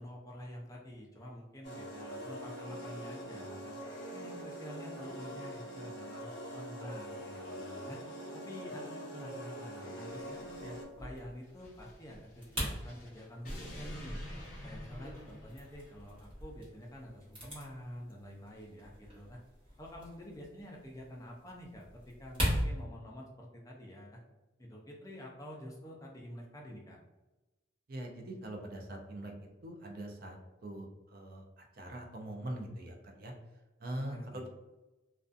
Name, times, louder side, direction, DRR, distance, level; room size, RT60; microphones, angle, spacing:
voice 1, 0.0-3.8 4.1-8.0 8.3-14.2 14.6-19.4 19.8-21.9 22.2-24.2 24.6-27.0 34.0-34.4, equal, 15° left, -2 dB, 0.4 m, -48 dB
sound 1, 1.6-10.8, equal, 60° left, 1.0 m, -44 dB
sound 2, 10.0-22.6, equal, 30° right, 0.9 m, -42 dB
sound 3, 11.5-16.2, equal, 40° left, 0.7 m, -47 dB
voice 2, 27.9-29.3 29.6-33.3 33.8-34.5, right 1 dB, 50° right, 2 dB, 0.4 m, -43 dB
2.5 x 2.2 x 2.4 m, 1.1 s
head